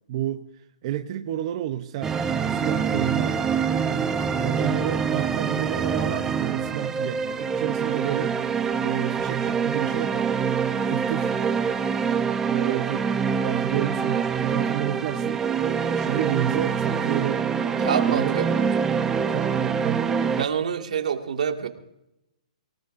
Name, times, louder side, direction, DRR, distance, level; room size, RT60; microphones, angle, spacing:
voice 1, 0.1-2.2 2.5-3.4 4.4-8.4 8.8-10.4 10.9-11.3 12.7-13.1 13.4-15.4 15.9-17.5 18.0-18.4 19.3-20.1, right 12 dB, 45° right, 6 dB, 0.8 m, -30 dB
sound 1, 2.0-20.4, right 6 dB, 10° right, 0.8 m, -25 dB
voice 2, 12.5-12.9 17.8-18.7 20.3-21.7, right 7 dB, 75° right, 4 dB, 2.1 m, -27 dB
24.5 x 18.0 x 2.6 m, 0.87 s
hypercardioid pair, 150°, 4 cm